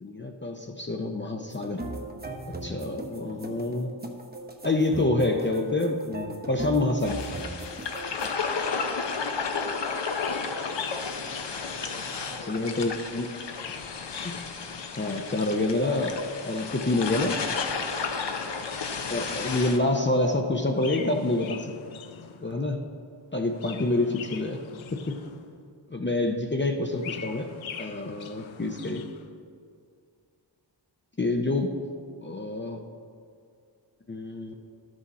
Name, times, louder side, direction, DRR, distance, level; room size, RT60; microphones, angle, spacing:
voice 1, 0.0-1.8 2.6-3.9 4.6-7.2 12.5-13.3 14.2-14.3 15.0-17.4 19.1-21.7 22.4-22.8 23.3-24.6 24.9-25.2 25.9-27.5 27.8-29.0 31.2-31.7 32.2-32.8 34.1-34.5, left 2 dB, 25° left, 3 dB, 0.7 m, -27 dB
sound 1, 1.5-8.3, right 1 dB, 20° right, 1.0 m, -38 dB
sound 2, 7.1-19.8, left 5 dB, 65° left, 0.9 m, -33 dB
voice 2, 8.5-9.2 9.5-10.0 11.6-12.6 17.9-18.2 22.4-22.6 23.4-23.5 25.1-25.3 28.2-28.3 34.5-34.6, right 1 dB, 45° right, 0 dB, 1.9 m, -48 dB
Chirp tweet, 10.1-12.6 13.3-15.7 17.3-19.4 20.7-22.6 23.4-25.7 26.7-29.3, left 8 dB, 90° left, 0.6 m, -43 dB
12.0 x 6.3 x 4.2 m, 2.3 s
cardioid pair, 45°, 46 cm